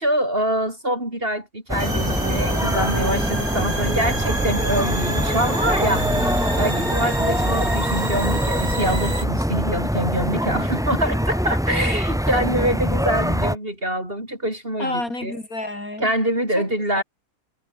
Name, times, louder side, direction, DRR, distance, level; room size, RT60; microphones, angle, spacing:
voice 1, 0.0-6.1 6.6-15.3 16.0-17.0, right 1 dB, 35° right, 8.0 m, -25 dB
sound 1, 1.7-13.6, equal, ahead, 5.3 m, -23 dB
sound 2, 1.8-9.2, right 2 dB, 65° right, 8.3 m, -28 dB
voice 2, 6.1-6.6 14.8-16.1 16.6-16.7 16.9-17.0, left 2 dB, 60° left, 7.4 m, -30 dB
omnidirectional pair, 1.7 m